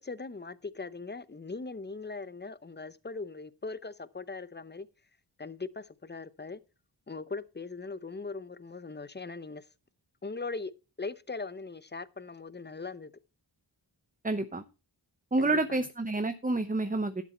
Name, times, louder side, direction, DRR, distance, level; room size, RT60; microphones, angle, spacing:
voice 1, 0.0-4.9 5.4-6.6 7.1-9.6 10.2-10.7 11.0-13.1 15.4-15.6, left 3 dB, 25° left, 0.7 m, -40 dB
voice 2, 14.2-14.6 15.3-17.2, right 2 dB, 20° right, 0.8 m, -29 dB
12.0 x 7.4 x 4.3 m
wide cardioid pair, 55°, 44 cm